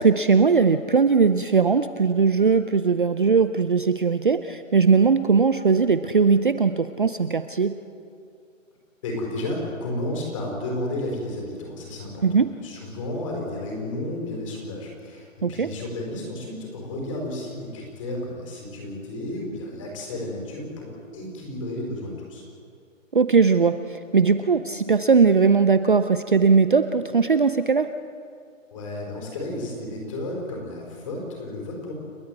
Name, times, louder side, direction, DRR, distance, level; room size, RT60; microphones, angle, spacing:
voice 1, 0.0-7.8 12.2-12.5 15.4-15.7 23.1-27.9, right 5 dB, 40° right, 10 dB, 0.6 m, -19 dB
voice 2, 9.0-22.4 28.7-31.9, left 1 dB, 25° left, 0 dB, 4.9 m, -32 dB
30.0 x 10.0 x 9.5 m, 2.4 s
hypercardioid pair, 170°, 39 cm